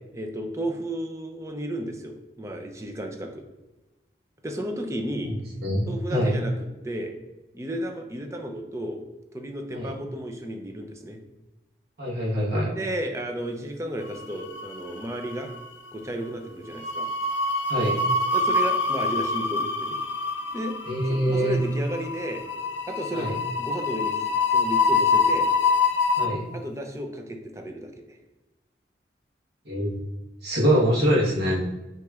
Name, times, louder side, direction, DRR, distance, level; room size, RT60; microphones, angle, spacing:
voice 1, 0.1-3.4 4.4-5.3 5.9-6.5 6.8-7.1 7.5-9.0 9.3-11.2 12.8-15.5 15.9-17.1 18.3-20.0 20.5-20.8 21.1-22.4 22.9-23.3 23.6-24.2 24.5-25.5 26.5-28.2, right 1 dB, 15° right, 3 dB, 0.5 m, -33 dB
voice 2, 5.6-6.3 9.7-9.9 12.0-12.7 17.7-18.0 20.9-21.6 23.1-23.3 26.2-26.5 29.6-29.9 30.4-31.6, equal, 65° right, -6 dB, 1.3 m, -24 dB
sound 1, 14.2-15.0 15.3-15.5 16.7-26.3, left 3 dB, 90° left, 0.5 m, -25 dB
5.9 x 2.9 x 2.4 m, 1.1 s
head